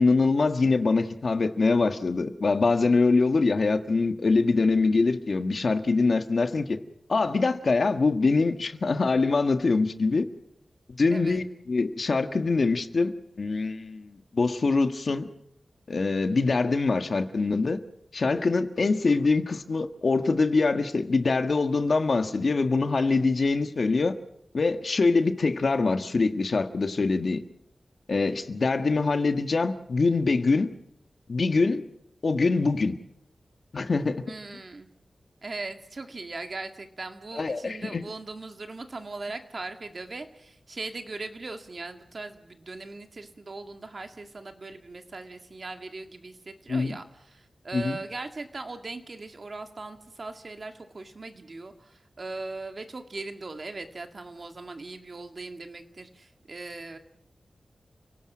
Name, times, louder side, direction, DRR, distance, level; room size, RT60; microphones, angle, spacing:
voice 1, 0.0-6.8 7.1-10.3 11.0-13.1 13.4-15.3 15.9-17.8 18.1-24.1 24.5-27.4 28.1-30.7 31.3-31.8 32.2-33.0 33.7-34.2 37.4-38.0 46.7-47.0 47.7-48.0, left 3 dB, 55° left, 7 dB, 1.6 m, -24 dB
voice 2, 11.1-11.4 34.2-34.9 35.4-57.0, right 3 dB, 45° right, 6 dB, 2.0 m, -39 dB
30.0 x 18.0 x 6.2 m, 0.75 s
wide cardioid pair, 105°, 0 cm